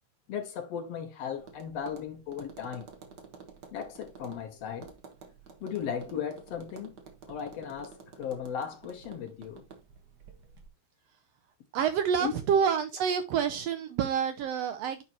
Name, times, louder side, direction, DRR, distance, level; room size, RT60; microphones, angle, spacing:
voice 1, 0.3-2.9 3.7-4.9 5.6-7.0 7.3-9.6 12.2-12.3, left 8 dB, 70° left, 1.8 m, -36 dB
Tap, 1.4-10.7, right 5 dB, 50° right, 1.3 m, -51 dB
voice 2, 11.7-15.0, right 7 dB, 75° right, 1.5 m, -28 dB
10.0 x 4.4 x 2.9 m
omnidirectional pair, 3.4 m